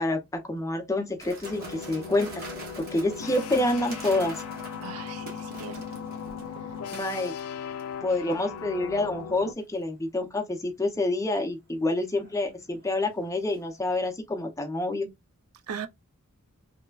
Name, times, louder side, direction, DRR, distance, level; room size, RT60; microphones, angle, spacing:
voice 1, 0.0-2.5 2.8-4.4 6.9-7.3 8.0-15.1, left 2 dB, 15° left, 0.6 m, -28 dB
sound 1, 1.2-7.9 8.3-8.6 9.4-9.8 12.0-13.6 13.9-14.0, right 2 dB, 45° right, 1.0 m, -45 dB
sound 2, 1.4-9.5, left 7 dB, 85° left, 0.4 m, -38 dB
voice 2, 4.8-5.8 15.7-15.9, right 6 dB, 75° right, 0.4 m, -38 dB
3.2 x 2.1 x 2.3 m
head